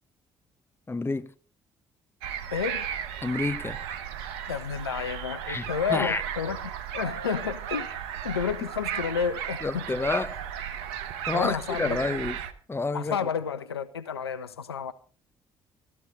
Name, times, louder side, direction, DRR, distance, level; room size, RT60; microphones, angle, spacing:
voice 1, 0.9-1.3 3.2-3.8 5.5-6.2 9.6-10.4 11.3-12.4 12.7-13.3, left 3 dB, 20° left, 0.9 m, -29 dB
sound 1, 2.2-12.5, right 9 dB, 70° right, 1.0 m, -35 dB
voice 2, 2.5-2.9 4.5-6.6 6.9-7.9 8.2-9.9 11.3-12.0 12.9-14.9, left 7 dB, 85° left, 0.6 m, -30 dB
15.5 x 13.5 x 4.0 m
figure-of-eight pair, 45°, 13 cm